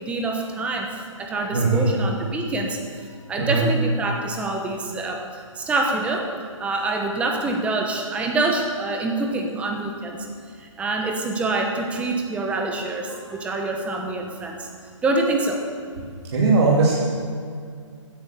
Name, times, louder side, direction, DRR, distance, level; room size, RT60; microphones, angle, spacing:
voice 1, 0.0-5.2 5.5-6.3 6.6-10.3 10.6-14.7 15.0-15.6, right 2 dB, 5° right, 2 dB, 1.1 m, -26 dB
voice 2, 1.5-1.9 3.4-3.6 13.3-13.4 16.3-17.0, right 4 dB, 60° right, -5 dB, 2.8 m, -19 dB
16.0 x 9.9 x 6.8 m, 2.1 s
hypercardioid pair, 155°, 17 cm